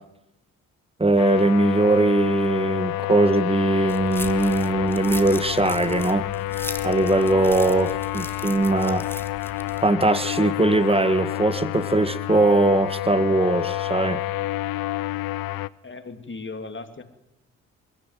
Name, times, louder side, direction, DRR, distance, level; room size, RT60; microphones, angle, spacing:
voice 1, 1.0-6.3 6.8-9.1 9.8-14.2, right 2 dB, 15° right, 14 dB, 1.6 m, -20 dB
sound 1, 1.2-15.7, left 15 dB, 60° left, 0.7 m, -28 dB
sound 2, 3.9-9.8, left 1 dB, 5° left, 1.9 m, -38 dB
voice 2, 15.8-17.0, left 3 dB, 30° left, 8 dB, 2.7 m, -37 dB
21.5 x 13.5 x 9.4 m, 0.89 s
hypercardioid pair, 40°, 40 cm